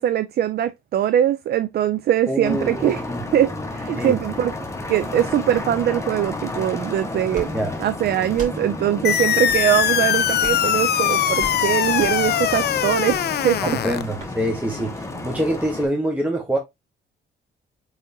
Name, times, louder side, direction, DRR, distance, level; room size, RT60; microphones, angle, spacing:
voice 1, 0.0-3.0 3.3-4.5 4.9-7.5 7.8-13.8, right 11 dB, 55° right, 0.4 m, -22 dB
voice 2, 2.3-3.2 3.9-4.1 7.5-7.7 13.6-16.6, right 1 dB, 5° right, 1.2 m, -25 dB
sound 1, 2.4-15.9, left 2 dB, 15° left, 1.2 m, -32 dB
sound 2, 7.3-7.5 8.3-8.6 9.4-9.6 10.4-10.7 11.4-11.6 12.0-12.2 13.1-13.2 14.2-14.3, right 3 dB, 40° right, 2.8 m, -35 dB
sound 3, 9.0-14.0, left 11 dB, 55° left, 0.5 m, -21 dB
4.8 x 3.7 x 2.7 m
cardioid pair, 90°, 20 cm